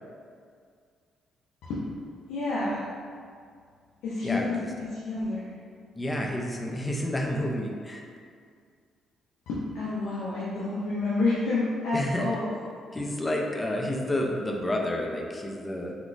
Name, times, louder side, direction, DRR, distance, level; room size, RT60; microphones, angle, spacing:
voice 1, 2.3-2.9 4.0-5.5 7.2-7.3 9.5-12.5 14.5-14.6, left 2 dB, 90° left, -9 dB, 0.5 m, -29 dB
voice 2, 4.2-4.7 5.9-8.0 11.9-12.3 12.9-15.9, left 1 dB, 20° left, 0 dB, 0.4 m, -30 dB
3.6 x 2.4 x 2.4 m, 2.1 s
cardioid pair, 90°, 0 cm